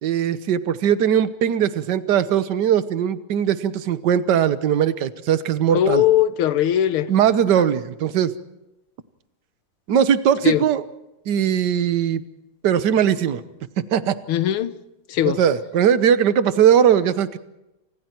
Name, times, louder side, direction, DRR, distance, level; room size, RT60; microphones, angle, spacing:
voice 1, 0.0-6.0 7.1-8.3 9.9-10.8 11.3-12.2 12.6-13.4 13.9-14.1 15.2-17.4, right 9 dB, 60° right, 1.6 m, -19 dB
voice 2, 5.7-7.1 10.4-10.6 14.3-14.7 15.1-15.4, left 11 dB, 85° left, 1.9 m, -19 dB
29.0 x 26.0 x 4.5 m
omnidirectional pair, 2.3 m